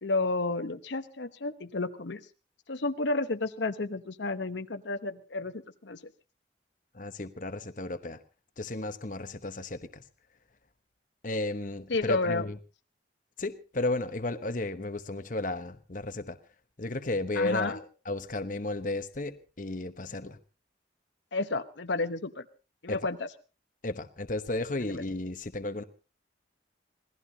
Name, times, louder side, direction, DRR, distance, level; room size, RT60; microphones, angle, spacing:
voice 1, 0.0-2.2 2.7-6.0 11.9-12.4 17.4-17.8 21.3-22.4 22.8-23.3 24.9-25.0, left 3 dB, 70° left, 9 dB, 1.0 m, -31 dB
voice 2, 6.9-8.2 8.6-10.0 11.2-12.6 13.4-16.4 16.8-20.4 22.9-23.0 23.8-25.8, left 2 dB, 45° left, 10 dB, 1.0 m, -33 dB
26.5 x 18.0 x 2.8 m, 0.33 s
head